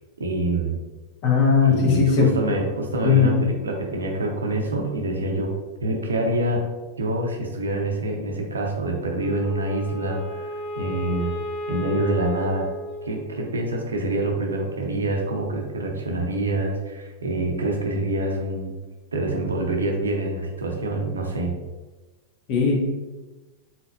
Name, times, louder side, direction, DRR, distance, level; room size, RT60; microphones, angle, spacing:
voice 1, 0.2-0.7 1.7-5.5 5.8-6.6 7.0-11.3 11.7-12.7 13.0-18.7 19.1-21.5, right 2 dB, 70° right, 2 dB, 0.6 m, -26 dB
voice 2, 1.2-2.3 3.0-3.3 22.5-22.8, left 6 dB, 45° left, -1 dB, 1.1 m, -18 dB
Wind instrument woodwind instrument, 9.2-13.6, left 1 dB, 15° right, 1.2 m, -33 dB
4.2 x 4.0 x 2.3 m, 1.2 s
figure-of-eight pair, 90°, 0 cm